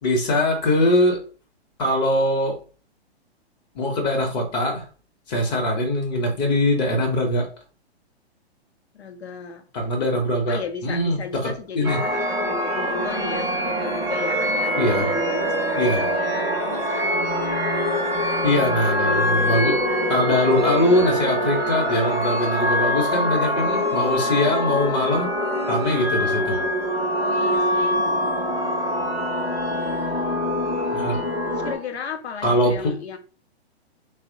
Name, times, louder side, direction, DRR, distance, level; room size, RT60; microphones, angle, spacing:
voice 1, 0.0-1.2 1.8-2.6 3.8-4.8 5.3-7.5 9.7-11.2 11.8-12.0 14.8-15.1 15.8-16.0 18.4-19.8 20.1-25.3 25.7-26.6 30.9-31.2 32.4-32.9, left 1 dB, 40° left, 0.7 m, -22 dB
voice 2, 8.9-9.6 10.5-17.1 19.8-20.3 27.1-28.7 29.7-30.4 31.5-33.2, left 5 dB, 75° left, 0.6 m, -35 dB
sound 1, 11.8-31.8, equal, 10° right, 0.5 m, -24 dB
2.9 x 2.0 x 2.6 m
figure-of-eight pair, 120°, 33 cm